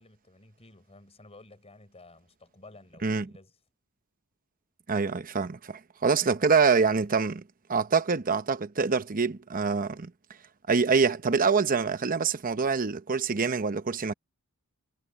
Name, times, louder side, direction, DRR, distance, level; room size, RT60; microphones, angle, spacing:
voice 1, 0.0-3.6, left 2 dB, 30° left, 5.0 m, -53 dB
voice 2, 4.9-7.4 7.7-10.1 10.7-14.1, right 5 dB, 40° right, 0.8 m, -25 dB
head